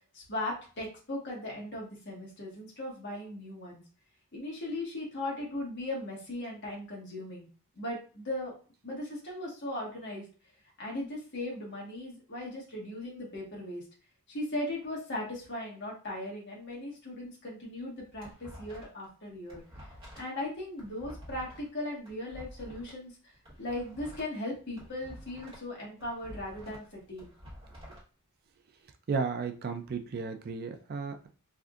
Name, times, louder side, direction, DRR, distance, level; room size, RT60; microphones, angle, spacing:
voice 1, 0.1-3.8 4.3-7.5 7.8-8.5 8.8-10.2 10.8-13.8 14.3-19.6 20.1-23.3 23.6-27.3, left 1 dB, 50° left, -3 dB, 1.4 m, -38 dB
sound 1, 17.8-19.1 19.3-22.9 23.3-25.7 26.0-28.0, equal, 25° right, 1.4 m, -49 dB
voice 2, 29.1-31.3, right 5 dB, 45° right, 6 dB, 0.4 m, -34 dB
3.4 x 2.6 x 2.4 m, 0.37 s
head